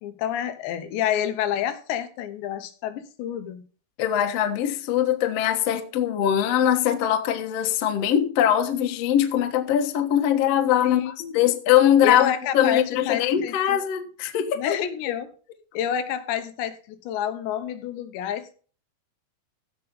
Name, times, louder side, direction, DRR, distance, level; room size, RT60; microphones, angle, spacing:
voice 1, 0.0-3.6 10.8-11.4 12.0-13.8 14.6-15.3 15.7-18.5, left 10 dB, 90° left, 3.4 m, -28 dB
voice 2, 4.0-14.8, left 10 dB, 65° left, 1.6 m, -22 dB
15.5 x 5.9 x 5.5 m
omnidirectional pair, 4.9 m